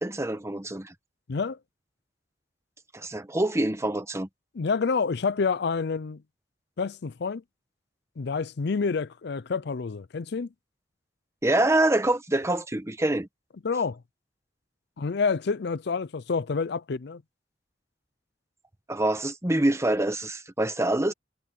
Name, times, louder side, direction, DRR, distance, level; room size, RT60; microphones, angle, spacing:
voice 1, 0.0-0.9 2.9-4.3 11.4-13.3 18.9-21.1, right 1 dB, 15° right, 1.2 m, -25 dB
voice 2, 4.5-6.2 6.8-7.4 8.2-10.5 13.6-14.0 15.0-17.2, left 5 dB, 65° left, 0.5 m, -28 dB
head